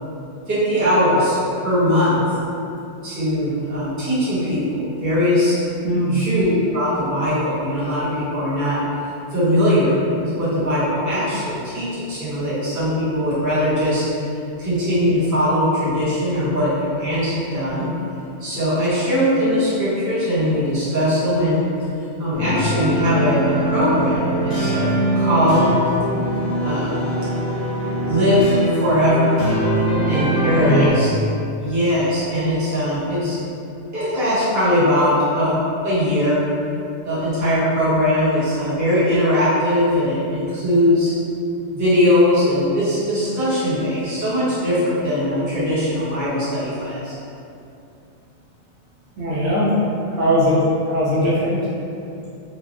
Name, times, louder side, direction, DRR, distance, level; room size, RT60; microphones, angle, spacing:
voice 1, 0.5-2.2 3.0-5.5 6.1-8.8 9.3-14.0 14.6-17.9 18.4-21.6 22.2-25.7 26.6-27.1 28.1-28.5 28.8-29.4 30.1-31.1 31.6-33.4 33.9-35.6 35.8-36.4 37.0-41.1 41.7-47.1, equal, 15° right, -12 dB, 0.8 m, -20 dB
voice 2, 5.8-6.2 30.6-30.9 49.2-49.7 50.1-51.5, equal, 70° right, -8 dB, 1.0 m, -19 dB
sound 1, 22.3-30.9, right 1 dB, 50° left, 0.8 m, -22 dB
3.2 x 2.2 x 2.4 m, 2.6 s
omnidirectional pair, 1.3 m